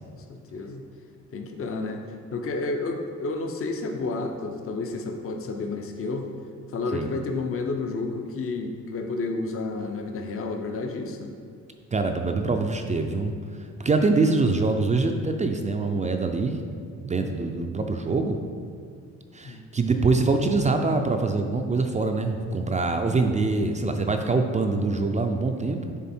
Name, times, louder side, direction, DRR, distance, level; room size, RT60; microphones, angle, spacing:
voice 1, 0.1-0.8 1.3-2.1 2.3-6.3 6.7-11.3 17.2-17.4 19.4-19.6, left 3 dB, 50° left, 4 dB, 0.7 m, -31 dB
voice 2, 11.9-13.3 13.8-16.6 16.9-18.4 19.3-26.0, right 3 dB, 25° right, 4 dB, 0.4 m, -24 dB
7.1 x 3.4 x 4.3 m, 2.1 s
cardioid pair, 90°, 30 cm